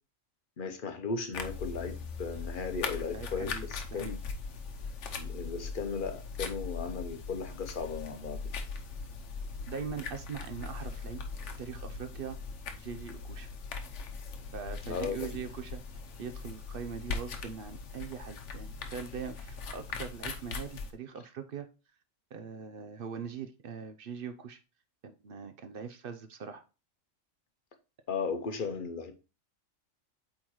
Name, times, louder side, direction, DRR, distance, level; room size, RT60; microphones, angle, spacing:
voice 1, 0.6-4.2 5.1-8.4 14.9-15.4 28.1-29.1, left 5 dB, 45° left, 0.9 m, -36 dB
sound 1, 1.3-20.9, left 4 dB, 65° left, 1.1 m, -40 dB
voice 2, 3.1-3.6 3.9-4.1 9.7-12.4 12.8-13.5 14.5-15.8 16.2-21.7 22.3-24.6 25.0-26.6, right 6 dB, 55° right, 0.7 m, -41 dB
8.2 x 3.9 x 3.0 m
omnidirectional pair, 1.4 m